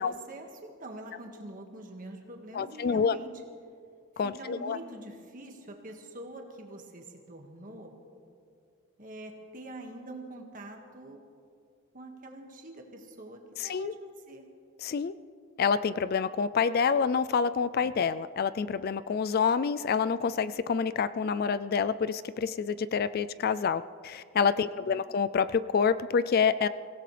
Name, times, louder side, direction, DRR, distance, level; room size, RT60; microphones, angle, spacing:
voice 1, 0.0-3.3 4.2-8.0 9.0-11.3 11.9-14.5 24.6-24.9, right 1 dB, 40° right, 2 dB, 1.8 m, -45 dB
voice 2, 2.5-3.2 4.2-4.8 13.6-13.9 14.8-15.1 15.6-26.7, left 6 dB, 45° left, 15 dB, 0.3 m, -27 dB
24.5 x 17.0 x 3.3 m, 2.4 s
head